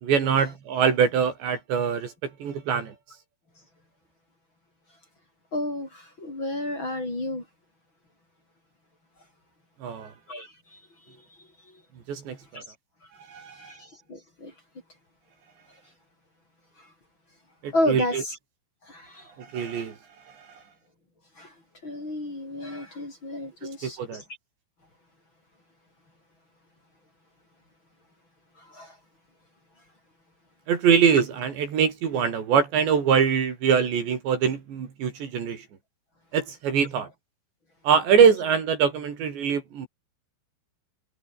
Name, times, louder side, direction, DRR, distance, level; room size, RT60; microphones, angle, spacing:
voice 1, 0.0-3.0 9.8-10.1 12.1-12.6 13.3-13.8 17.6-18.2 19.4-20.0 20.3-20.5 23.8-24.2 30.7-35.7 36.3-37.1 37.8-39.9, right 7 dB, 60° right, 5.5 m, -23 dB
voice 2, 5.5-7.4 10.3-10.8 11.1-11.8 12.5-12.6 13.6-14.5 16.8-16.9 17.7-18.4 18.8-19.3 21.4-21.5 21.8-24.2 28.6-29.0, left 1 dB, 25° left, 6.0 m, -32 dB
omnidirectional pair, 5.8 m